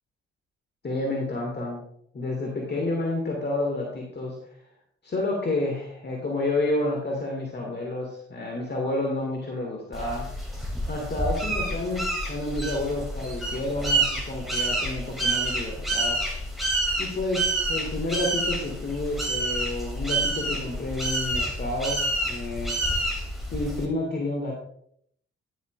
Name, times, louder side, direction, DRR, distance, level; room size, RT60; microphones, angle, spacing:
voice 1, 0.8-1.8 2.1-4.3 5.0-10.3 10.9-16.2 17.0-22.8 23.5-24.5, left 2 dB, 30° left, -1 dB, 2.1 m, -30 dB
sound 1, 9.9-23.9, right 2 dB, ahead, 2.6 m, -28 dB
10.5 x 9.9 x 2.5 m, 0.66 s
figure-of-eight pair, 40°, 32 cm